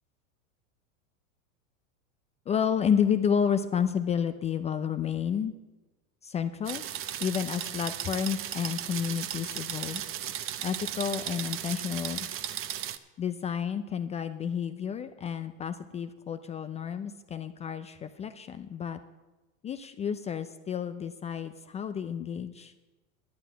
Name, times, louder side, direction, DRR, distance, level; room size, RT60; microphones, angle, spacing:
voice 1, 2.5-5.5 6.2-6.8 7.2-10.0 10.6-12.3 13.2-19.0 19.6-22.7, left 7 dB, 20° left, 10 dB, 0.3 m, -30 dB
sound 1, 6.6-13.0, right 11 dB, 30° right, 0.7 m, -36 dB
11.5 x 8.1 x 7.5 m, 1.1 s
hypercardioid pair, 110°, 41 cm